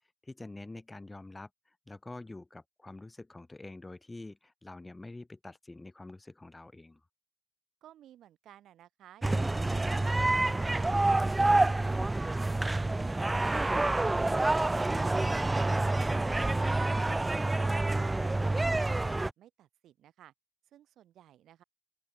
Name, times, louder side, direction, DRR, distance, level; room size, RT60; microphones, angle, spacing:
voice 1, 0.2-7.0 16.4-16.6, left 2 dB, 15° left, 6.9 m, -46 dB
voice 2, 7.8-11.2 16.1-18.8 19.2-20.3 20.7-21.6, right 12 dB, 75° right, 5.4 m, -56 dB
sound 1, 9.2-19.3, right 2 dB, 15° right, 0.4 m, -28 dB
open air
cardioid pair, 90°, 0 cm